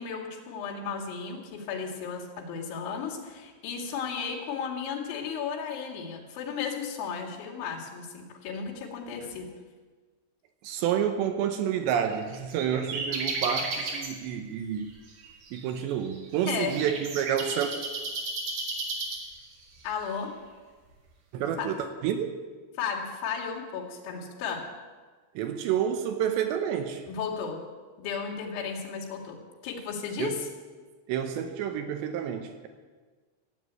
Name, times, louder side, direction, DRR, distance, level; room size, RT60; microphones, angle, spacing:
voice 1, 0.0-9.5 16.5-16.8 19.8-20.3 21.6-21.7 22.8-24.7 27.1-27.6 28.0-29.4 29.6-30.4, left 6 dB, 90° left, -3 dB, 4.7 m, -34 dB
voice 2, 10.6-14.9 15.5-17.7 21.3-22.3 25.4-27.0 30.2-30.4 31.1-32.7, right 9 dB, 80° right, 7 dB, 3.0 m, -29 dB
sound 1, 11.8-14.1 14.8-19.6, right 3 dB, 55° right, 3.2 m, -34 dB
15.0 x 8.3 x 9.4 m, 1.4 s
omnidirectional pair, 5.2 m